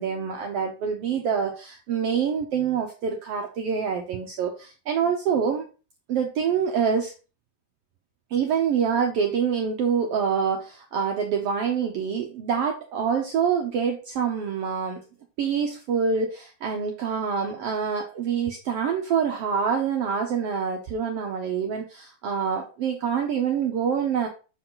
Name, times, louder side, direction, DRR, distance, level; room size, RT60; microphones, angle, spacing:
voice 1, 0.0-5.7 6.1-7.1 8.3-15.0 15.4-24.3, right 6 dB, 85° right, 3 dB, 1.3 m, -26 dB
7.4 x 4.7 x 3.8 m, 0.34 s
omnidirectional pair, 3.8 m